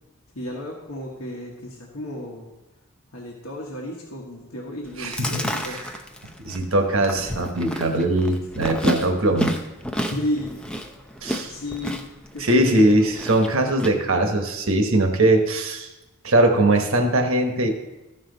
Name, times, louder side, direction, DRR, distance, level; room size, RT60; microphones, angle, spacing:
voice 1, 0.3-2.5 3.1-5.8 10.0-10.6 11.5-12.0 12.3-12.9, left 1 dB, 85° left, -2 dB, 1.3 m, -32 dB
Chewing mastication, 4.9-13.9, equal, 5° left, 0.6 m, -31 dB
voice 2, 6.4-9.5 11.2-11.5 12.4-15.9 16.2-17.7, right 1 dB, 70° right, 5 dB, 1.2 m, -20 dB
14.0 x 5.7 x 4.0 m, 0.99 s
head